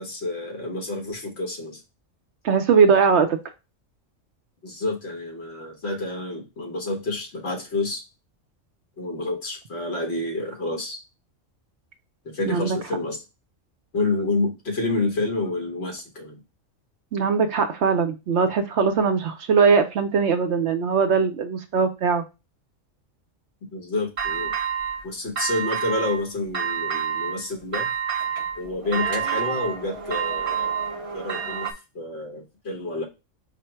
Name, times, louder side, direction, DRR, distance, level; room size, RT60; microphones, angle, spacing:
voice 1, 0.0-1.8 4.6-8.0 9.0-11.0 12.2-13.2 13.9-16.4 23.7-24.5 25.0-27.9 28.6-30.7 31.1-31.7 31.9-33.0, left 2 dB, 55° left, 2 dB, 1.5 m, -29 dB
voice 2, 2.4-3.4 12.5-12.8 17.1-22.2, right 5 dB, 70° right, 8 dB, 0.8 m, -20 dB
sound 1, 24.2-25.0 25.4-26.2 26.5-27.4 27.7-31.7, right 7 dB, 50° right, 0.4 m, -28 dB
5.0 x 2.0 x 4.3 m, 0.26 s
omnidirectional pair, 1.3 m